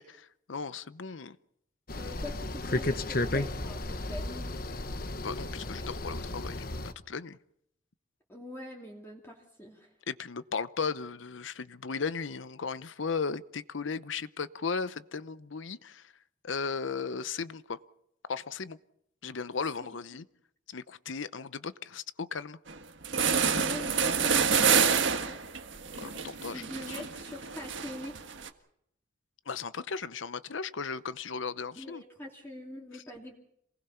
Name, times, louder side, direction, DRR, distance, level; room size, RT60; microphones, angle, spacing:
voice 1, 0.0-1.4 5.2-6.7 7.1-7.4 10.1-16.1 16.4-17.8 18.3-18.8 19.2-20.2 20.7-22.6 26.0-26.6 29.5-32.0, left 5 dB, 80° left, 15 dB, 0.8 m, -36 dB
sound 1, 1.9-6.9, left 2 dB, 50° left, 1.3 m, -33 dB
voice 2, 2.0-4.6 8.3-9.9 19.8-20.0 23.5-25.4 26.5-28.2 31.8-33.3, left 1 dB, 10° left, -2 dB, 2.7 m, -44 dB
sound 2, 22.7-22.8 23.0-28.5, right 6 dB, 70° right, 1.6 m, -28 dB
27.5 x 19.5 x 5.8 m, 0.74 s
head